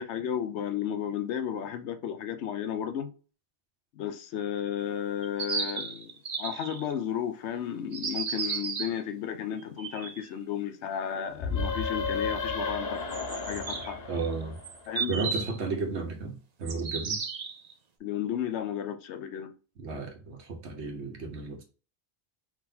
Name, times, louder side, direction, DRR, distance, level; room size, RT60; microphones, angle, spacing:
voice 1, 0.0-3.1 3.9-6.1 6.4-14.0 14.9-15.1 18.0-19.5, left 9 dB, 85° left, 0.9 m, -33 dB
sound 1, 5.2-6.9 7.9-9.0 9.6-10.2 12.7-12.8 13.1-15.6 16.7-17.7, right 5 dB, 45° right, 0.6 m, -34 dB
sound 2, 11.4-15.0, left 4 dB, 65° left, 1.1 m, -33 dB
voice 2, 14.1-14.6 15.1-17.2 19.8-21.6, right 4 dB, 85° right, 1.3 m, -33 dB
4.8 x 3.9 x 2.7 m
omnidirectional pair, 1.1 m